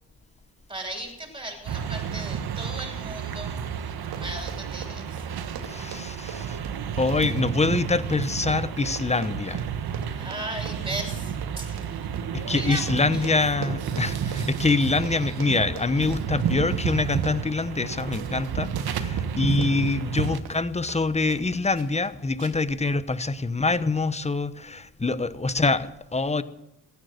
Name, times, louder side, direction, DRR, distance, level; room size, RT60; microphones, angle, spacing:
voice 1, 0.7-3.5 4.2-5.3 10.1-12.0 12.5-12.9 13.1-13.3, right 1 dB, 10° right, 2 dB, 7.2 m, -36 dB
sound 1, 1.7-20.4, right 8 dB, 65° right, 1.5 m, -31 dB
Run, 3.9-21.5 21.7-22.1 22.4-22.8 23.1-23.2, right 6 dB, 85° right, 2.6 m, -44 dB
voice 2, 5.6-6.6 7.0-9.6 12.3-26.4, left 3 dB, 15° left, 14 dB, 1.0 m, -25 dB
16.0 x 13.0 x 6.8 m, 0.88 s
cardioid pair, 90°, 40 cm